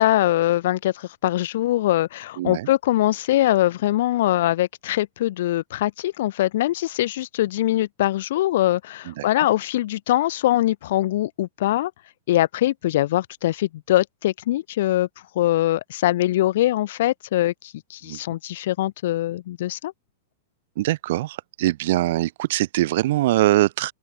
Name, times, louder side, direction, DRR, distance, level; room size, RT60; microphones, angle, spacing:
voice 1, 0.0-11.9 12.3-15.1 15.3-19.9, left 14 dB, 60° left, 1.1 m, -22 dB
voice 2, 2.4-2.7 9.1-9.2 18.1-18.2 20.8-23.9, right 16 dB, 55° right, 0.8 m, -22 dB
open air
figure-of-eight pair, 100°, 0 cm